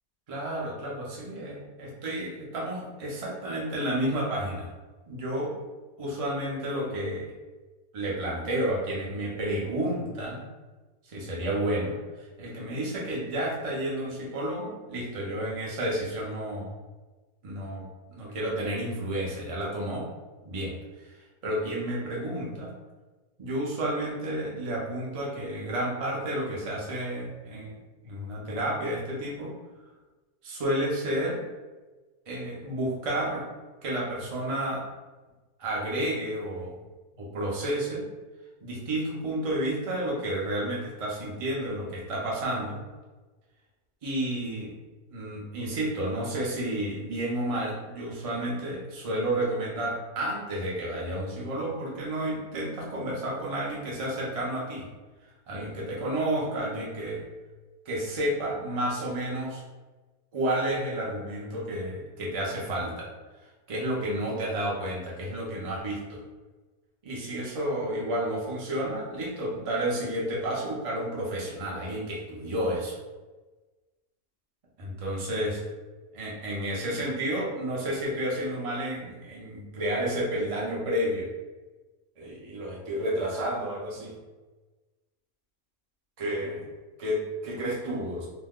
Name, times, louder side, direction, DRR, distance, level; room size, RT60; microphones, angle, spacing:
voice 1, 0.3-4.7 5.1-5.5 6.0-7.3 7.9-10.4 11.0-16.7 17.4-17.8 18.1-20.1 20.4-21.2 21.4-22.7 23.4-27.8 28.0-29.5 30.4-31.4 32.3-33.5 33.8-34.8 35.6-36.8 37.1-38.0 38.6-42.8 44.0-44.7 45.1-54.8 55.5-57.2 57.9-59.6 60.3-63.1 63.7-66.2 67.0-73.0 74.8-75.6 76.1-81.3 82.2-84.2 86.2-86.7 87.0-88.3, right 1 dB, 50° right, -4 dB, 0.4 m, -31 dB
2.6 x 2.1 x 3.6 m, 1.2 s
omnidirectional pair, 1.6 m